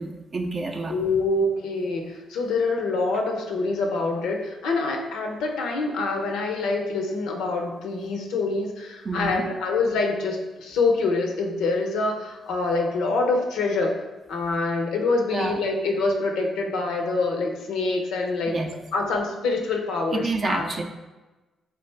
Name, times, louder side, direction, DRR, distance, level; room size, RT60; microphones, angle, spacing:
voice 1, 0.0-0.9 9.0-9.4 15.3-15.6 18.5-18.7 20.1-20.8, right 3 dB, 45° right, 3 dB, 0.4 m, -28 dB
voice 2, 0.9-14.0 14.3-18.5 18.9-20.7, left 3 dB, 80° left, 2 dB, 0.5 m, -25 dB
3.3 x 2.4 x 3.2 m, 1.1 s
hypercardioid pair, 50°, 0 cm